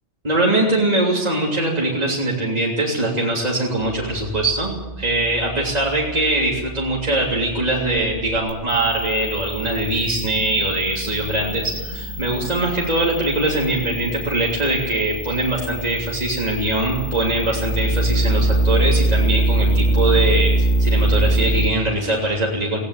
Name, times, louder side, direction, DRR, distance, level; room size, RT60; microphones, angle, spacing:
voice 1, 0.2-22.8, right 2 dB, 35° right, -3 dB, 3.3 m, -22 dB
sound 1, 3.8-21.7, right 1 dB, 80° left, 2.0 m, -24 dB
18.5 x 17.0 x 8.5 m, 1.1 s
omnidirectional pair, 1.2 m